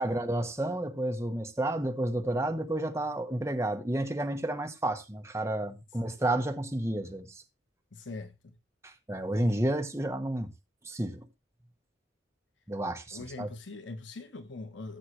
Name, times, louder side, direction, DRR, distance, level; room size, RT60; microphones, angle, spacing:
voice 1, 0.0-7.4 8.8-10.5 10.8-11.3 12.7-13.5, right 1 dB, 15° right, 1.0 m, -31 dB
voice 2, 7.9-8.5 13.1-15.0, left 3 dB, 85° left, 1.1 m, -42 dB
14.5 x 7.6 x 3.1 m
head